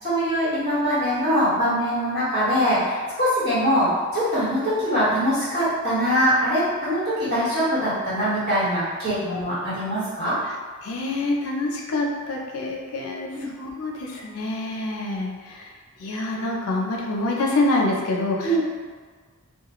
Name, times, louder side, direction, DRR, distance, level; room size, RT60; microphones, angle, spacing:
voice 1, 0.0-10.4 13.3-13.5 18.4-18.6, equal, 45° right, -12 dB, 1.3 m, -23 dB
voice 2, 10.8-15.7 16.0-18.6, left 2 dB, 75° left, -1 dB, 0.4 m, -26 dB
2.4 x 2.2 x 2.9 m, 1.5 s
head